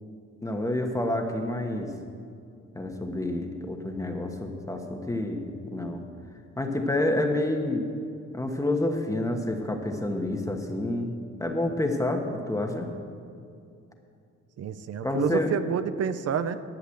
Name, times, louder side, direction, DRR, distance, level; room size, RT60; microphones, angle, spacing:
voice 1, 0.4-1.9 2.7-6.0 6.6-7.9 8.3-11.1 11.4-12.9 15.0-15.5, left 1 dB, 10° left, 2 dB, 1.3 m, -28 dB
voice 2, 14.6-16.6, right 7 dB, 55° right, 12 dB, 0.7 m, -29 dB
11.5 x 8.1 x 7.8 m, 2.5 s
cardioid pair, 90°, 30 cm